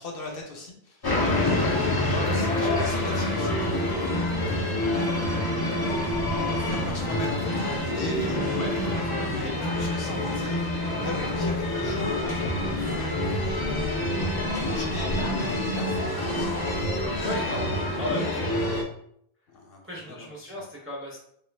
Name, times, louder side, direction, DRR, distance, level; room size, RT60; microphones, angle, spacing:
voice 1, 0.0-3.9 4.3-4.4 4.8-8.4 9.2-10.7 10.9-17.3 19.5-20.6, left 2 dB, 65° left, 0 dB, 0.9 m, -41 dB
sound 1, 1.0-18.8, left 1 dB, 35° left, 0.4 m, -27 dB
voice 2, 17.2-18.5 19.8-21.2, left 1 dB, 15° right, -3 dB, 0.6 m, -35 dB
3.0 x 2.3 x 3.2 m, 0.69 s
omnidirectional pair, 1.1 m